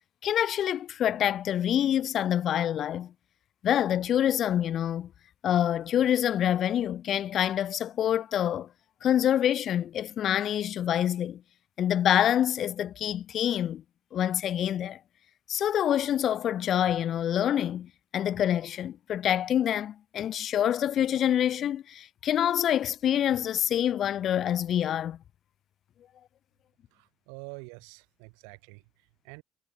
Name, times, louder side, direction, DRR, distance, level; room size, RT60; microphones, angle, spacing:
voice 1, 0.2-3.1 3.6-5.1 5.4-8.7 9.0-11.4 11.8-13.8 14.1-15.0 15.5-25.2, left 10 dB, 50° left, 0.5 m, -26 dB
voice 2, 26.9-29.4, right 40 dB or more, 85° right, 3.6 m, -47 dB
supercardioid pair, 105°, 0 cm